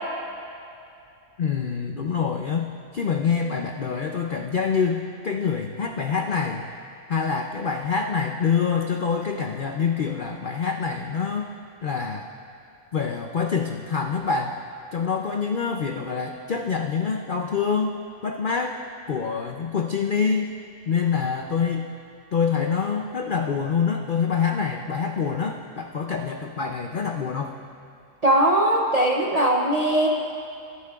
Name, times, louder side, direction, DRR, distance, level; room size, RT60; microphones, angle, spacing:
voice 1, 1.4-2.7 2.9-6.6 7.1-11.5 11.8-12.3 12.9-14.6 14.9-18.0 18.2-18.8 19.1-20.5 20.9-21.9 22.3-27.5, left 6 dB, 70° left, 3 dB, 0.4 m, -26 dB
voice 2, 28.2-30.1, right 1 dB, 45° right, -1 dB, 0.5 m, -20 dB
24.5 x 11.0 x 2.4 m, 2.6 s
omnidirectional pair, 1.6 m